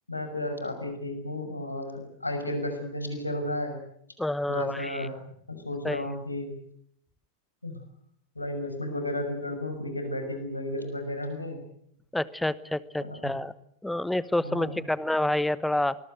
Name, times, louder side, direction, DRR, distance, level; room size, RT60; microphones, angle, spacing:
voice 1, 0.1-3.8 4.5-5.2 5.5-6.5 7.6-7.8 8.3-11.6 13.0-13.4 14.4-14.9, left 1 dB, 85° left, 7 dB, 6.0 m, -33 dB
voice 2, 4.2-5.1 5.8-6.0 12.1-13.5 13.8-16.0, left 1 dB, 5° left, 18 dB, 1.1 m, -28 dB
25.5 x 21.0 x 9.2 m, 0.71 s
figure-of-eight pair, 90°, 0 cm